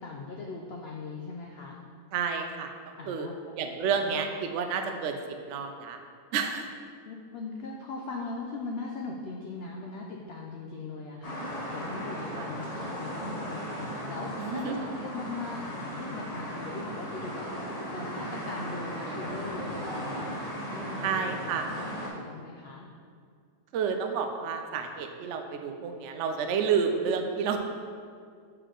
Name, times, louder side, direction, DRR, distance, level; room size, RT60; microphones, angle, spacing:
voice 1, 0.0-1.8 3.0-3.3 4.0-4.1 7.0-20.4 20.7-22.9, left 3 dB, 80° left, 0 dB, 0.5 m, -40 dB
voice 2, 2.1-2.7 3.1-3.3 3.6-6.0 6.3-6.7 12.4-12.5 14.4-14.8 21.0-21.7 23.7-27.6, right 6 dB, 70° right, 5 dB, 0.7 m, -30 dB
sound 1, 11.2-22.1, equal, 30° left, 0.8 m, -36 dB
6.4 x 4.4 x 3.8 m, 2.1 s
omnidirectional pair, 1.7 m